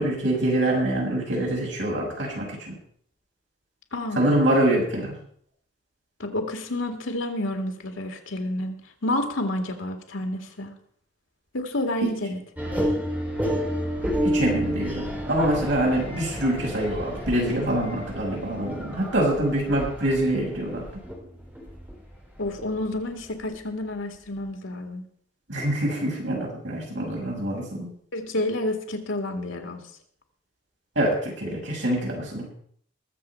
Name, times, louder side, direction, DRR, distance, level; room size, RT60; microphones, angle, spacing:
voice 1, 0.0-2.8 4.1-5.1 12.0-12.1 14.2-21.0 25.5-27.9 30.9-32.5, right 1 dB, 70° right, -2 dB, 6.2 m, -25 dB
voice 2, 3.9-4.3 6.2-8.7 9.0-10.7 11.5-13.0 22.4-25.0 28.1-29.8, left 1 dB, 90° left, 4 dB, 2.1 m, -29 dB
sound 1, 12.6-23.6, equal, 10° right, 3.6 m, -31 dB
21.0 x 7.4 x 4.6 m, 0.62 s
head